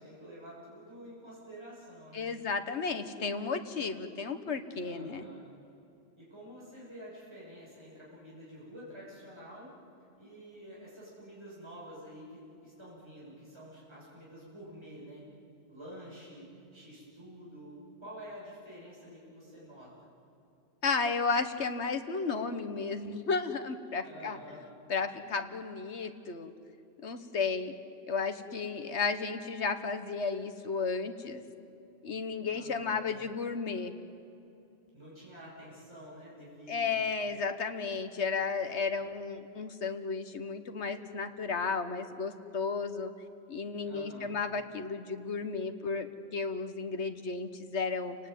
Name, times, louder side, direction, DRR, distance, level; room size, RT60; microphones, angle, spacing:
voice 1, 0.0-2.3 4.8-5.5 6.2-9.7 10.2-15.3 15.7-20.1 24.0-24.6 32.4-33.0 34.9-37.0 43.8-44.4, equal, 20° right, -7 dB, 7.0 m, -49 dB
voice 2, 2.1-5.3 20.8-24.4 24.9-26.5 27.0-27.7 28.1-31.4 32.0-33.9 36.7-43.1 43.5-48.2, left 4 dB, 65° left, 8 dB, 1.6 m, -33 dB
29.0 x 18.5 x 9.3 m, 2.7 s
omnidirectional pair, 1.2 m